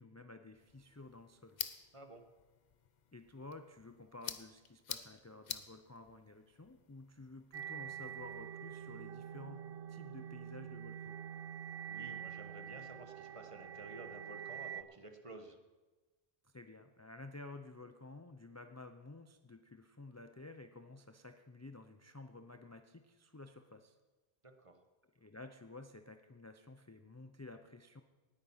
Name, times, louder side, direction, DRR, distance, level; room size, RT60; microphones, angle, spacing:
voice 1, 0.0-1.6 3.1-11.2 16.4-24.0 25.0-28.0, left 2 dB, 20° left, 7 dB, 0.4 m, -53 dB
sound 1, 0.5-8.5, left 7 dB, 50° left, 0.8 m, -49 dB
sound 2, 7.5-14.8, right 9 dB, 65° right, 0.8 m, -46 dB
voice 2, 11.9-15.6 24.4-24.8, right 2 dB, 30° right, 6 dB, 1.2 m, -52 dB
18.5 x 9.0 x 5.6 m, 1.2 s
omnidirectional pair, 1.1 m